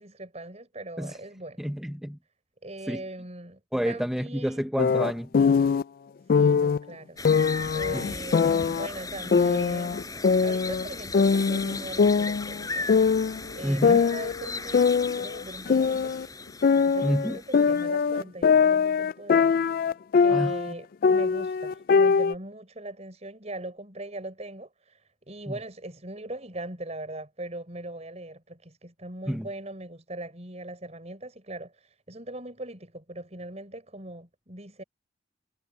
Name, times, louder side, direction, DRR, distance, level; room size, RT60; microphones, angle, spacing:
voice 1, 0.0-1.7 2.6-3.6 3.8-4.7 6.3-7.2 7.7-12.9 13.5-16.2 16.7-19.5 20.1-34.8, right 1 dB, 40° right, 6.9 m, -40 dB
voice 2, 1.6-2.2 2.9-3.0 3.7-5.3 7.9-8.1 13.6-14.0 17.0-17.4 20.3-20.5 29.3-29.5, equal, ahead, 0.7 m, -29 dB
sound 1, 4.8-5.8 6.3-6.8 7.2-8.9 9.3-10.9 11.1-12.6 12.9-13.4 13.8-16.3 16.6-20.7 21.0-22.3, left 5 dB, 55° left, 0.3 m, -22 dB
sound 2, 7.2-17.8, left 3 dB, 20° left, 5.2 m, -37 dB
head